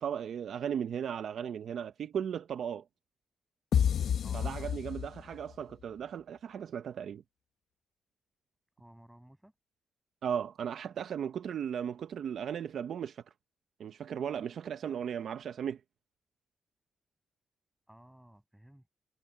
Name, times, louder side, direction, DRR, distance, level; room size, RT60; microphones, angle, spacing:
voice 1, 0.0-2.8 4.3-7.2 10.2-13.2 13.8-15.8, right 8 dB, 55° right, 0.6 m, -36 dB
sound 1, 3.7-5.5, left 8 dB, 55° left, 0.9 m, -29 dB
voice 2, 4.2-4.8 8.8-9.5 14.8-15.1 17.9-18.9, right 1 dB, 5° right, 6.9 m, -56 dB
wide cardioid pair, 175°, 0 cm